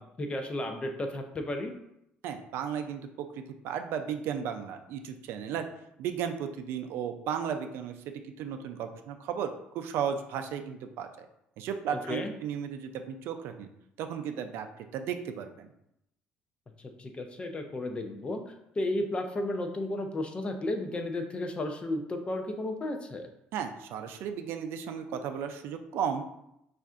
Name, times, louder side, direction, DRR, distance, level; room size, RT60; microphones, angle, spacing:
voice 1, 0.0-1.7 11.9-12.3 16.8-23.3, left 1 dB, 25° left, 5 dB, 0.5 m, -33 dB
voice 2, 2.2-5.6 6.0-11.3 11.6-13.7 14.0-14.7 14.9-15.7 23.5-26.2, right 8 dB, 75° right, 7 dB, 0.4 m, -35 dB
5.3 x 2.5 x 2.4 m, 0.80 s
cardioid pair, 110°, 4 cm